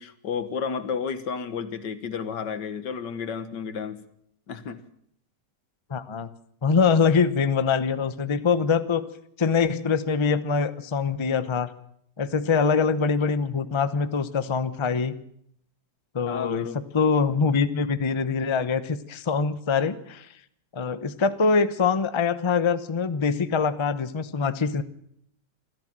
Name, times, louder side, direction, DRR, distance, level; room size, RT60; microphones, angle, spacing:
voice 1, 0.0-4.0 4.5-4.8 16.3-16.8, left 6 dB, 80° left, 11 dB, 2.0 m, -32 dB
voice 2, 5.9-6.3 6.6-9.0 9.4-11.7 12.2-15.1 16.1-16.7 16.9-20.3 20.7-24.8, left 5 dB, 25° left, 12 dB, 0.7 m, -24 dB
26.0 x 14.0 x 7.5 m, 0.70 s
omnidirectional pair, 1.9 m